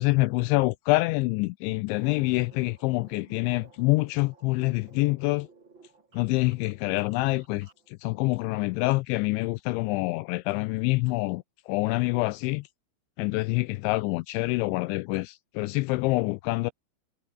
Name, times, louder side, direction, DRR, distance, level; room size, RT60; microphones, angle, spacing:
voice 1, 0.0-5.5 6.1-12.7 13.2-16.7, left 22 dB, 85° left, 2.6 m, -26 dB
sound 1, 1.9-7.9, right 4 dB, 25° right, 3.7 m, -56 dB
omnidirectional pair, 5.8 m